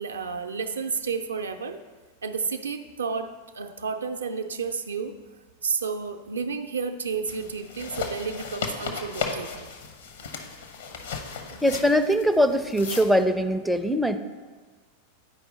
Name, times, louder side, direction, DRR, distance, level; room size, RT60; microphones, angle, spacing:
voice 1, 0.0-1.8 2.2-5.2 5.6-9.7 11.5-11.9, right 5 dB, 70° right, 6 dB, 0.5 m, -31 dB
sound 1, 7.3-13.2, left 5 dB, 65° left, 0.8 m, -36 dB
voice 2, 11.6-14.2, equal, ahead, 7 dB, 0.4 m, -22 dB
9.7 x 4.7 x 3.9 m, 1.4 s
figure-of-eight pair, 90°, 0 cm